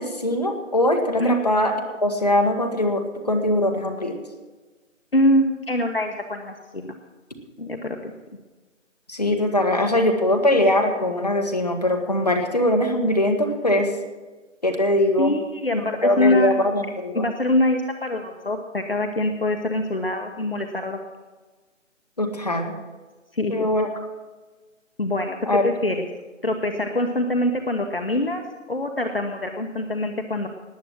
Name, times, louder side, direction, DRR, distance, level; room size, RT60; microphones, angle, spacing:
voice 1, 0.0-1.7 2.0-4.2 9.1-13.9 14.6-15.3 15.7-17.3 22.2-22.7 23.5-23.9 25.5-25.6, left 1 dB, 30° left, 3 dB, 1.5 m, -21 dB
voice 2, 5.1-7.0 7.6-8.1 15.2-16.5 17.1-21.0 23.3-23.7 25.0-26.0 26.4-28.4 28.7-30.5, left 1 dB, 50° left, 4 dB, 1.2 m, -24 dB
19.0 x 7.5 x 7.4 m, 1.3 s
figure-of-eight pair, 180°, 38 cm